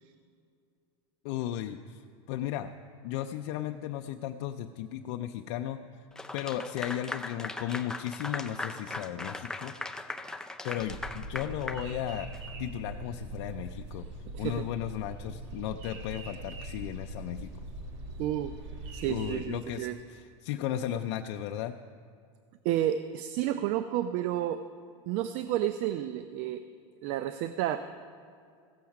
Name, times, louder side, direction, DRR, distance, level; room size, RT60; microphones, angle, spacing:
voice 1, 1.2-2.0 2.3-2.7 3.0-5.8 6.3-9.7 10.6-12.3 12.6-14.0 14.4-17.5 19.1-21.8, left 11 dB, 65° left, 6 dB, 0.5 m, -35 dB
Clapping / Applause, 6.2-12.5, left 2 dB, 5° left, 0.4 m, -39 dB
sound 1, 10.8-19.5, right 2 dB, 70° right, 2.1 m, -42 dB
voice 2, 14.3-14.7 18.2-18.6 18.9-20.0 22.6-24.6 25.1-26.6 27.0-27.8, right 12 dB, 50° right, 11 dB, 0.5 m, -31 dB
15.5 x 7.2 x 5.8 m, 2.3 s
supercardioid pair, 130°, 16 cm